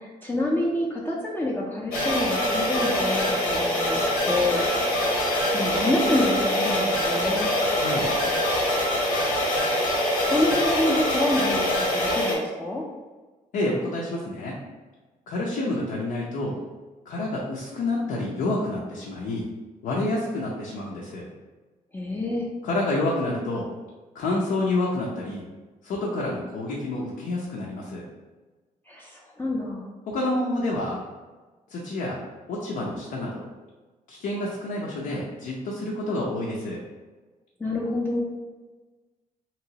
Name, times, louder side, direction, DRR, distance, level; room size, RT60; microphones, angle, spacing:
voice 1, 0.0-5.0 5.3-7.5 10.3-12.8 21.9-22.5 28.9-29.8 37.6-38.2, left 2 dB, 15° left, -4 dB, 0.5 m, -27 dB
sound 1, 1.9-12.3, left 1 dB, 90° left, 0.9 m, -24 dB
voice 2, 7.7-8.1 13.5-14.6 15.3-16.6 17.1-19.5 19.8-21.3 22.6-23.7 24.1-25.4 25.8-28.0 30.1-31.0 31.7-32.2 32.5-33.4 34.1-36.8, left 2 dB, 70° left, -4 dB, 0.6 m, -28 dB
2.9 x 2.9 x 2.8 m, 1.3 s
cardioid pair, 110°, 15 cm